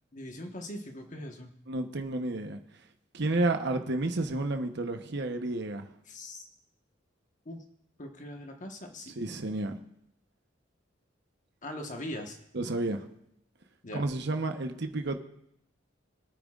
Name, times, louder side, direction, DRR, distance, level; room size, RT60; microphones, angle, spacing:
voice 1, 0.1-1.5 6.1-6.4 7.4-7.6 8.0-9.1 11.6-12.4 13.8-14.1, left 1 dB, 40° left, 3 dB, 1.3 m, -41 dB
voice 2, 1.7-2.6 3.1-5.9 9.2-9.8 12.5-13.1 13.9-15.2, right 2 dB, 60° right, 6 dB, 1.0 m, -31 dB
24.5 x 9.1 x 2.5 m, 0.77 s
head